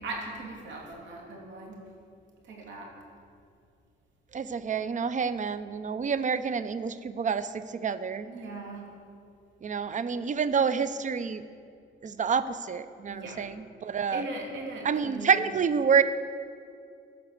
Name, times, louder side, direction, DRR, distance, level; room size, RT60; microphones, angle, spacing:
voice 1, 0.0-1.9 2.4-2.9 8.2-8.9 13.1-13.4 14.1-15.5, right 2 dB, 70° right, -1 dB, 3.0 m, -39 dB
voice 2, 4.3-8.3 9.6-11.4 12.0-14.2 14.8-16.0, right 6 dB, 40° right, 13 dB, 0.6 m, -28 dB
16.0 x 5.9 x 6.7 m, 2.4 s
cardioid pair, 90°, 20 cm